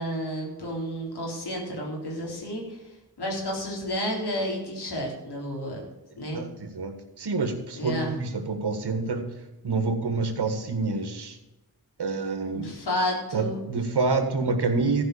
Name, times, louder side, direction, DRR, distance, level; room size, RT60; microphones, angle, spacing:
voice 1, 0.0-2.8 3.2-5.8 6.2-6.4 7.8-8.2 12.5-13.6, equal, 90° left, -1 dB, 3.9 m, -31 dB
voice 2, 6.3-9.3 9.6-11.4 12.0-12.7 13.3-15.0, right 3 dB, 85° right, 6 dB, 1.8 m, -27 dB
14.0 x 5.6 x 8.5 m, 0.99 s
cardioid pair, 50°, 39 cm